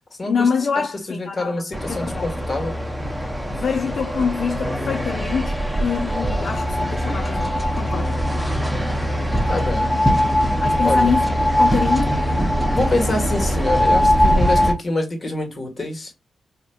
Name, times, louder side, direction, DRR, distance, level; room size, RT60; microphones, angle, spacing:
voice 1, 0.3-2.3 3.5-8.1 9.3-9.7 10.6-11.3 11.6-12.2, left 6 dB, 65° left, 0.3 m, -25 dB
voice 2, 1.1-2.7 9.5-9.9 10.8-11.1 12.7-16.1, left 2 dB, 45° left, 1.4 m, -25 dB
sound 1, 1.7-14.7, equal, 5° right, 0.8 m, -21 dB
4.2 x 2.6 x 2.3 m
supercardioid pair, 45°, 0 cm